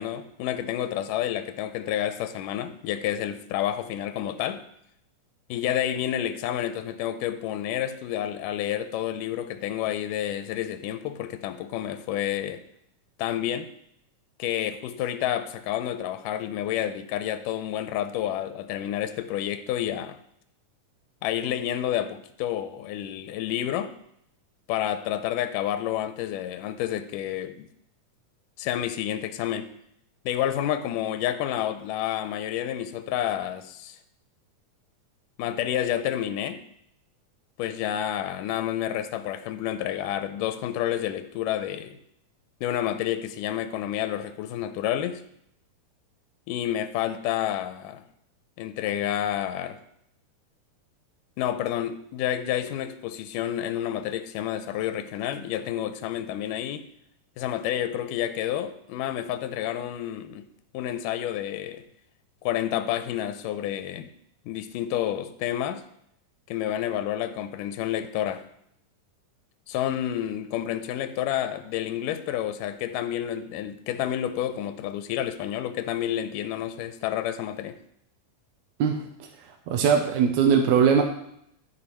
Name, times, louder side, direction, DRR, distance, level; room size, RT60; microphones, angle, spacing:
voice 1, 0.0-4.6 5.5-12.6 13.2-13.7 14.4-20.2 21.2-23.9 24.7-27.7 28.6-29.7 30.3-34.0 35.4-36.6 37.6-42.0 42.6-45.2 46.5-48.0 48.6-49.8 51.4-56.8 57.4-60.5 60.7-61.8 62.4-64.1 64.5-65.8 66.5-68.4 69.7-77.8, left 11 dB, 90° left, 11 dB, 2.3 m, -29 dB
voice 2, 79.7-81.0, right 7 dB, 70° right, 3 dB, 2.1 m, -20 dB
12.0 x 5.0 x 5.6 m, 0.72 s
omnidirectional pair, 3.8 m